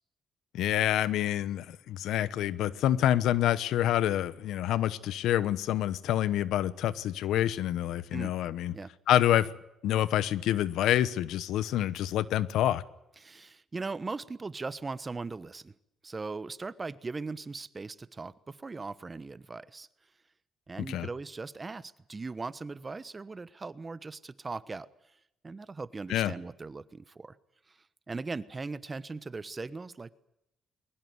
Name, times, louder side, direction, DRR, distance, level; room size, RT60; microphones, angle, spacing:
voice 1, 0.5-8.7 9.1-9.5 9.8-12.8 20.9-21.1 26.1-26.3, left 12 dB, 85° left, 18 dB, 1.0 m, -27 dB
voice 2, 13.2-15.7 16.0-19.9 20.7-24.9 25.4-27.4 27.7-27.8 28.1-30.1, right 3 dB, 25° right, 17 dB, 1.2 m, -39 dB
22.0 x 19.5 x 9.6 m, 0.82 s
cardioid pair, 90°, 0 cm